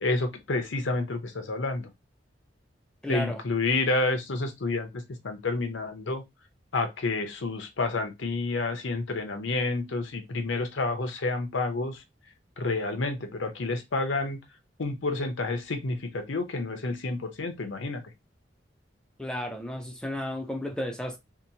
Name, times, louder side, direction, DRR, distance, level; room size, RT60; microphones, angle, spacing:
voice 1, 0.0-1.9 3.1-6.2 6.7-12.0 12.6-14.4 14.8-18.0, left 3 dB, 85° left, 0.7 m, -29 dB
voice 2, 3.0-3.4 19.2-21.2, left 1 dB, 5° left, 0.3 m, -33 dB
2.8 x 2.1 x 2.7 m
head